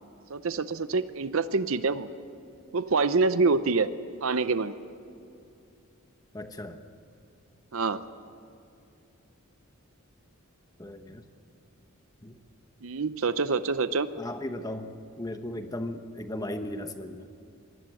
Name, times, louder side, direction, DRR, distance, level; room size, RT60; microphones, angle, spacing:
voice 1, 0.3-2.1 2.7-3.9 4.2-4.7 7.7-8.0 12.8-14.1, right 4 dB, 65° right, 13 dB, 0.7 m, -26 dB
voice 2, 6.3-6.8 10.8-11.2 12.2-12.4 14.1-14.9 15.2-17.3, left 1 dB, 15° left, 7 dB, 1.2 m, -36 dB
24.5 x 19.5 x 7.8 m, 2.6 s
head